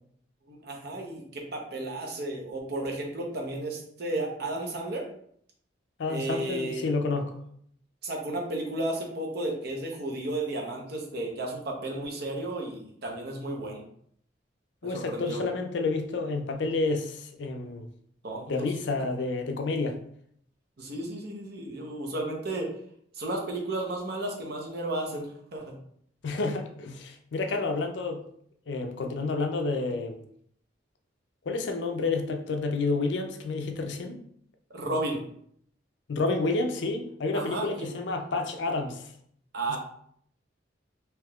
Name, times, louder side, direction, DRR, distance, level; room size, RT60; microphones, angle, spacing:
voice 1, 0.5-5.0 6.1-6.9 8.0-13.8 14.8-15.4 18.2-18.4 20.8-22.7 23.1-25.7 34.7-35.2 37.3-38.2 39.5-39.8, right 2 dB, 55° right, 0.7 m, -33 dB
voice 2, 6.0-7.4 14.8-17.9 18.5-20.0 26.2-28.2 28.7-30.2 31.5-34.2 36.1-39.0, left 3 dB, 65° left, 0.4 m, -29 dB
3.4 x 2.8 x 2.3 m
head